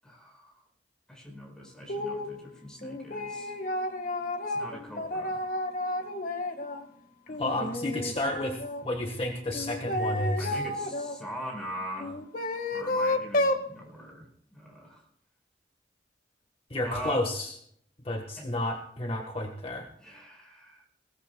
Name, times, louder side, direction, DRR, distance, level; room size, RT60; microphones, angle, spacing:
voice 1, 0.0-0.5 1.1-3.5 4.5-5.4 7.3-7.4 10.4-12.2 12.7-14.2 14.5-15.0 16.8-17.2 18.4-18.5 20.0-20.8, equal, 5° left, -1 dB, 5.0 m, -41 dB
sound 1, 1.9-2.3 2.8-6.8 7.3-8.8 9.5-11.2 12.0-13.7, left 1 dB, 50° left, 1.6 m, -31 dB
voice 2, 7.4-10.6 16.7-17.5 18.0-19.9, left 1 dB, 30° left, 2 dB, 1.5 m, -31 dB
22.0 x 17.5 x 2.3 m, 0.67 s
head